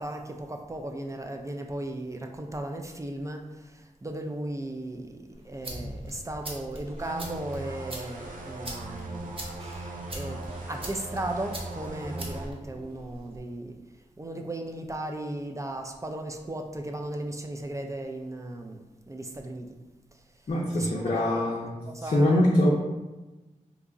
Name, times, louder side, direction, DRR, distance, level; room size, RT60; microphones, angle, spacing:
voice 1, 0.0-9.9 10.1-13.8 14.2-19.7 20.8-21.5 21.8-22.5, right 1 dB, 20° right, 3 dB, 0.3 m, -36 dB
sound 1, 5.3-13.4, right 1 dB, 40° right, 0.7 m, -42 dB
sound 2, 7.0-12.5, right 2 dB, 75° right, 0.5 m, -39 dB
voice 2, 20.5-22.7, left 1 dB, 50° left, -3 dB, 0.5 m, -24 dB
2.8 x 2.4 x 3.7 m, 1.1 s
wide cardioid pair, 70°, 14 cm